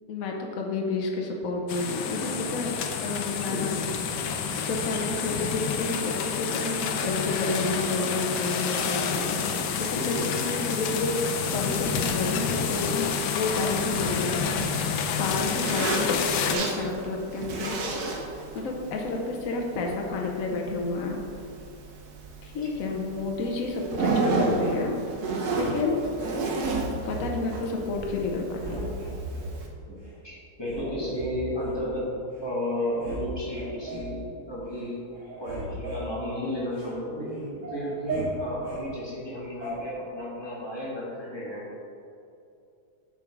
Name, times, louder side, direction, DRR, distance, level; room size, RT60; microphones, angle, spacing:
voice 1, 0.1-2.7 3.0-3.8 4.6-14.4 15.1-18.1 18.5-21.2 22.4-25.0 25.5-26.0 27.0-28.9, left 3 dB, 60° left, 0 dB, 1.1 m, -30 dB
sound 1, 1.7-16.6, left 6 dB, 80° left, 1.3 m, -29 dB
Zipper (clothing), 11.7-29.7, right 3 dB, 65° right, 1.5 m, -33 dB
sound 2, 25.5-26.1 26.6-27.6 28.0-28.2 28.5-29.5 30.0-30.1 30.6-31.8 32.4-32.5 32.8-33.2 33.5-34.1 34.6-34.9 35.1-36.9 37.3-38.8 39.6-39.7, right 1 dB, 45° right, 2.3 m, -36 dB
voice 2, 30.2-32.1 32.4-35.0 35.4-41.7, left 1 dB, 15° left, -7 dB, 1.9 m, -33 dB
6.9 x 6.2 x 4.7 m, 2.6 s
omnidirectional pair, 1.8 m